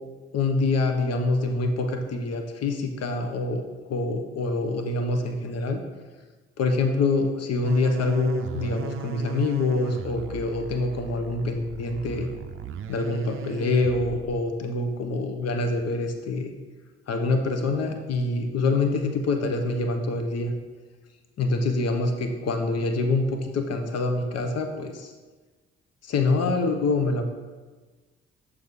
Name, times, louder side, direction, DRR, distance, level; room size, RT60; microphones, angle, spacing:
voice 1, 0.3-5.8 6.6-12.3 12.9-16.5 17.1-20.5 21.4-25.1 26.0-27.3, left 3 dB, 55° left, 5 dB, 0.9 m, -25 dB
sound 1, 7.6-14.4, right 8 dB, 45° right, 0.5 m, -37 dB
6.4 x 4.8 x 3.6 m, 1.3 s
hypercardioid pair, 45°, 30 cm